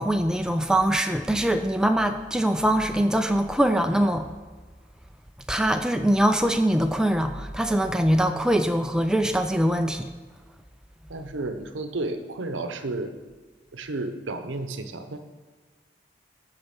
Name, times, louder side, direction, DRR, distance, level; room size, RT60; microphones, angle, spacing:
voice 1, 0.0-4.3 5.5-10.1, right 1 dB, 5° right, 6 dB, 0.3 m, -23 dB
voice 2, 11.1-13.1 13.7-15.2, right 2 dB, 85° right, 8 dB, 0.7 m, -32 dB
8.4 x 5.7 x 5.9 m, 1.4 s
head